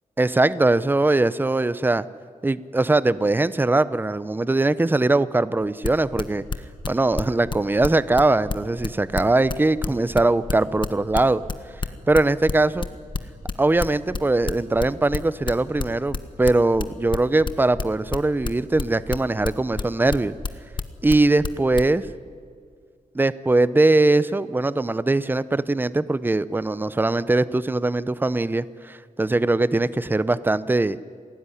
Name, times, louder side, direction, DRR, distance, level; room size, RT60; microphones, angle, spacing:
voice 1, 0.2-2.1 2.4-6.4 6.9-11.4 12.1-12.9 13.6-20.3 21.0-22.0 23.1-31.0, right 2 dB, 15° right, 16 dB, 0.6 m, -21 dB
sound 1, 5.8-21.9, left 4 dB, 35° left, 1.3 m, -28 dB
27.0 x 18.5 x 9.9 m, 2.1 s
wide cardioid pair, 145°, 14 cm